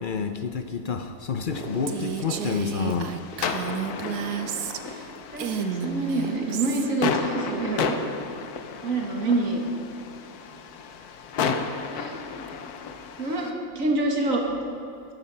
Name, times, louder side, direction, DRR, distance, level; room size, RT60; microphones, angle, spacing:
voice 1, 0.0-3.2, left 5 dB, 60° left, 7 dB, 0.5 m, -29 dB
sound 1, 1.5-13.5, left 6 dB, 80° left, 1.3 m, -33 dB
sound 2, 1.5-1.8 2.1-5.9 6.2-7.1, right 2 dB, 35° right, 2.2 m, -39 dB
Female speech woman speaking, 1.9-5.0 5.4-6.9, right 8 dB, 85° right, 1.3 m, -32 dB
voice 2, 5.3-8.0 8.8-9.6 11.9-12.5 13.2-14.4, right 2 dB, 60° right, 1 dB, 2.1 m, -27 dB
13.5 x 12.0 x 5.6 m, 2.5 s
omnidirectional pair, 1.6 m